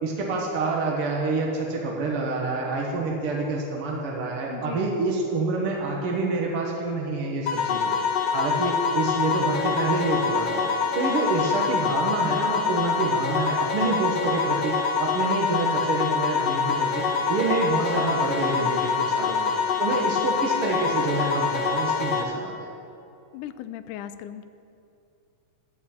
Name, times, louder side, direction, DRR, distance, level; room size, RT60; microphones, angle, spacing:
voice 1, 0.0-7.9 8.3-10.6 10.9-19.5 19.8-22.7, right 3 dB, 55° right, -2 dB, 1.7 m, -27 dB
voice 2, 4.5-4.8 23.3-24.4, left 11 dB, 80° left, 12 dB, 2.0 m, -37 dB
sound 1, 7.5-22.2, left 5 dB, 60° left, 1.7 m, -25 dB
sound 2, 16.7-22.2, right 1 dB, 15° right, 1.6 m, -44 dB
20.5 x 8.2 x 4.4 m, 2.7 s
omnidirectional pair, 3.7 m